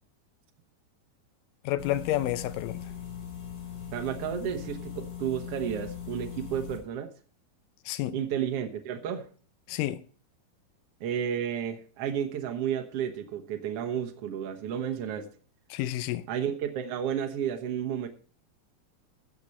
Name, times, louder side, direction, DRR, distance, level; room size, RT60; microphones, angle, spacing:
voice 1, 1.6-2.8 7.9-8.2 9.7-10.0 15.7-16.2, left 14 dB, 75° left, 2.1 m, -30 dB
sound 1, 1.8-6.8, left 8 dB, 45° left, 4.3 m, -40 dB
voice 2, 3.9-7.1 8.1-9.3 11.0-15.3 16.3-18.1, right 9 dB, 85° right, 1.3 m, -32 dB
15.0 x 8.2 x 4.3 m
omnidirectional pair, 4.4 m